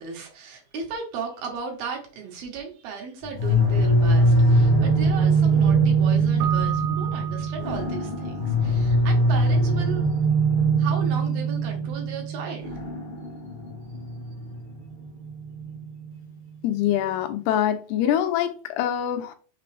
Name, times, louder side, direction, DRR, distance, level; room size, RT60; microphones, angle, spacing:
voice 1, 0.0-10.1 10.8-12.7, right 6 dB, 70° right, 3.0 m, -35 dB
sound 1, 3.2-8.9, left 3 dB, 60° left, 0.7 m, -40 dB
sound 2, 3.4-16.1, right 2 dB, 30° left, 0.8 m, -22 dB
Keyboard (musical), 6.4-8.2, right 9 dB, 85° right, 2.8 m, -33 dB
voice 2, 16.6-19.3, left 11 dB, 80° left, 2.6 m, -24 dB
6.8 x 5.0 x 3.3 m
omnidirectional pair, 4.8 m